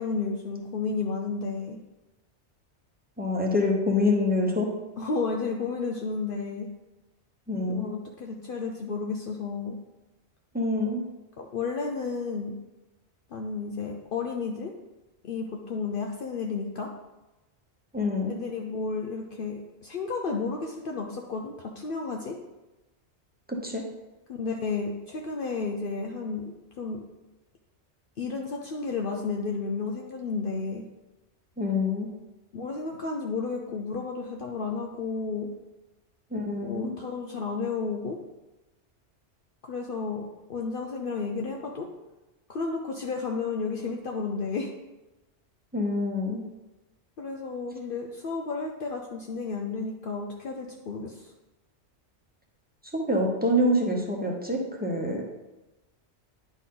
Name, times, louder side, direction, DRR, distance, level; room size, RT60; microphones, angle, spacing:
voice 1, 0.0-1.8 5.0-6.7 7.7-9.8 11.4-12.6 13.3-14.7 15.2-16.9 18.3-22.4 24.3-27.0 28.2-30.8 32.5-35.5 36.6-38.2 39.6-40.2 40.5-41.9 42.5-44.7 47.2-51.3, left 4 dB, 55° left, 1 dB, 0.8 m, -32 dB
voice 2, 3.2-4.7 7.5-7.9 10.5-11.0 17.9-18.4 23.6-23.8 31.6-32.1 36.3-36.9 45.7-46.4 52.9-55.4, left 1 dB, 10° right, -1 dB, 0.9 m, -26 dB
9.9 x 4.2 x 3.8 m, 1.0 s
omnidirectional pair, 1.2 m